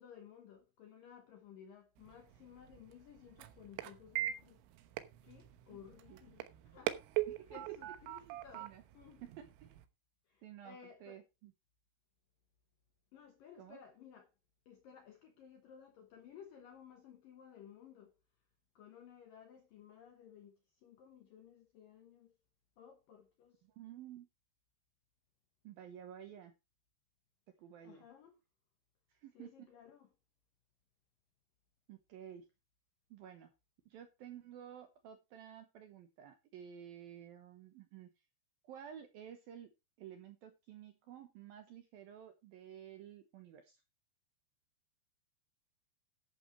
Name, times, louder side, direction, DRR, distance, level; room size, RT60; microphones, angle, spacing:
voice 1, 0.0-4.6 5.2-7.0 7.5-9.2 10.3-11.2 13.1-14.3 14.7-18.1 18.8-22.3 22.8-23.6 27.8-28.3 29.3-30.1, left 8 dB, 75° left, 2.1 m, -57 dB
sound 1, 2.0-9.9, right 15 dB, 85° right, 3.7 m, -42 dB
voice 2, 7.3-7.6 8.3-8.8 9.2-9.8 10.4-11.5 13.6-13.8 23.6-24.3 25.6-26.5 27.6-28.0 29.2-29.7 31.9-32.5 33.1-33.5 33.9-38.1 38.6-39.7 40.0-43.8, right 9 dB, 70° right, 2.3 m, -52 dB
11.5 x 11.5 x 3.1 m
omnidirectional pair, 5.7 m